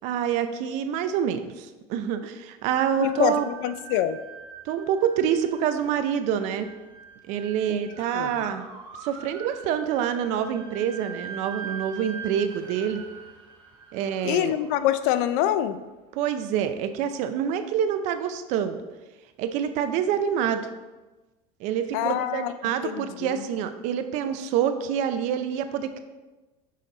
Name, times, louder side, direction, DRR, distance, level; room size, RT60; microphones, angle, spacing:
voice 1, 0.0-3.5 4.6-6.7 7.3-8.6 9.0-13.0 13.9-14.5 16.1-18.8 19.4-20.7 21.6-26.0, right 9 dB, 60° right, 10 dB, 0.5 m, -27 dB
sound 1, 2.7-15.8, right 6 dB, 35° right, 1.0 m, -43 dB
voice 2, 3.0-4.2 7.7-8.5 14.2-15.8 21.9-22.5 22.8-23.4, left 11 dB, 70° left, 11 dB, 0.4 m, -26 dB
6.5 x 4.1 x 3.9 m, 1.2 s
supercardioid pair, 140°, 14 cm